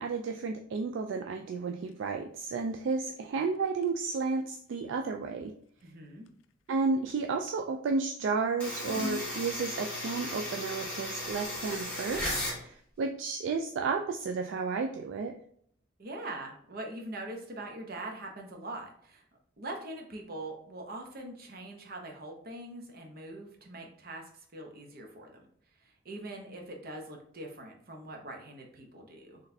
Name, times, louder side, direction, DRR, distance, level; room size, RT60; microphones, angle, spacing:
voice 1, 0.0-5.5 6.7-15.3, right 4 dB, 70° right, 4 dB, 0.3 m, -32 dB
Scissors, 1.5-7.6 8.2-9.3, left 5 dB, 80° left, 0.3 m, -46 dB
voice 2, 5.8-6.3 16.0-19.3 19.6-24.2 24.5-25.5 25.8-29.4, right 2 dB, 50° right, 2 dB, 0.8 m, -42 dB
sound 1, 8.6-12.6, left 1 dB, 5° left, 1.4 m, -36 dB
4.0 x 3.1 x 2.7 m, 0.63 s
head